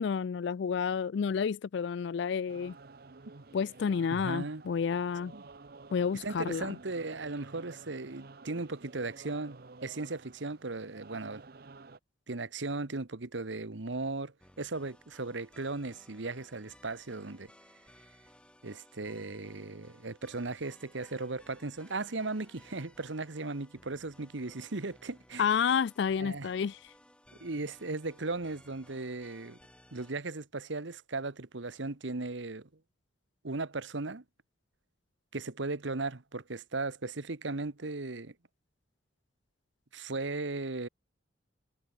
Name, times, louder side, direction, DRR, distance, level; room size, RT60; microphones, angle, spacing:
voice 1, 0.0-2.8 3.5-5.3 5.9-6.8 25.4-26.8, left 6 dB, 65° left, 0.4 m, -30 dB
sound 1, 2.5-12.0, right 3 dB, 50° right, 0.8 m, -52 dB
voice 2, 4.1-4.6 5.3-5.5 6.2-11.4 12.3-17.5 18.6-25.5 26.2-26.5 27.4-29.6 29.9-32.7 33.4-34.2 35.3-38.3 39.9-40.9, right 3 dB, 75° right, 1.2 m, -37 dB
sound 2, 14.4-30.1, left 1 dB, 5° left, 7.3 m, -60 dB
head